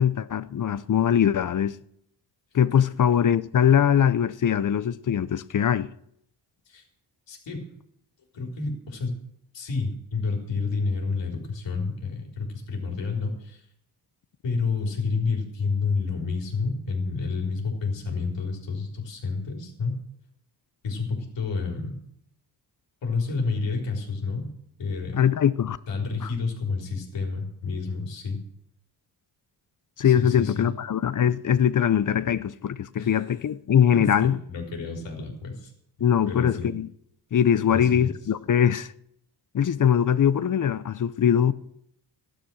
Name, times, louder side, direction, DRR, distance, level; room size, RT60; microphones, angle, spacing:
voice 1, 0.0-1.8 2.5-5.9 25.1-25.8 30.0-34.4 36.0-36.9 37.3-38.9 39.5-41.5, left 9 dB, 45° left, 0.7 m, -22 dB
voice 2, 7.3-7.6 8.3-9.2 9.5-13.6 14.4-20.0 20.8-21.9 23.0-24.5 24.8-25.2 25.9-28.4 30.0-30.7 33.0-33.2 33.9-35.7 36.3-36.7 37.7-38.1, left 4 dB, 80° left, 4.3 m, -29 dB
14.0 x 11.5 x 6.3 m
cardioid pair, 90°, 43 cm